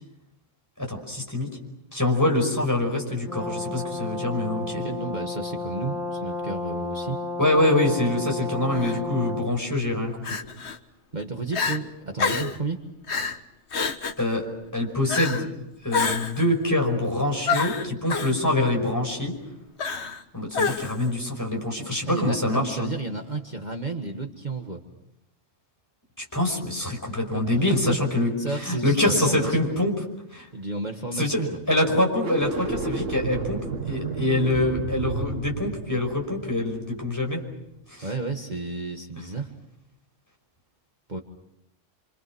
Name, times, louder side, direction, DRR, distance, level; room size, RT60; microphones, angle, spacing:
voice 1, 0.8-1.5 1.9-4.8 7.4-10.4 14.2-14.4 14.7-15.5 15.8-19.3 20.3-22.9 26.2-28.3 28.6-30.0 30.3-30.5 31.2-31.4 31.7-37.4 37.9-38.1, left 1 dB, 15° left, 2 dB, 5.4 m, -25 dB
Brass instrument, 3.3-9.5, left 3 dB, ahead, 2.7 m, -32 dB
voice 2, 4.7-7.2 11.1-12.8 22.1-24.8 27.3-28.0 28.4-29.8 30.5-31.6 38.0-39.5 41.1-41.2, right 3 dB, 35° right, 3 dB, 1.7 m, -32 dB
Crying sobbing, 8.7-9.0 10.2-10.8 11.2-11.3 11.5-11.8 12.2-12.6 13.1-13.4 13.7-14.2 15.1-15.5 15.9-16.4 17.5-18.3 19.8-20.2 20.5-21.1, left 5 dB, 60° left, 1.5 m, -27 dB
sound 1, 32.1-37.4, right 4 dB, 80° right, 1.9 m, -32 dB
29.0 x 25.5 x 6.2 m, 0.84 s
omnidirectional pair, 1.3 m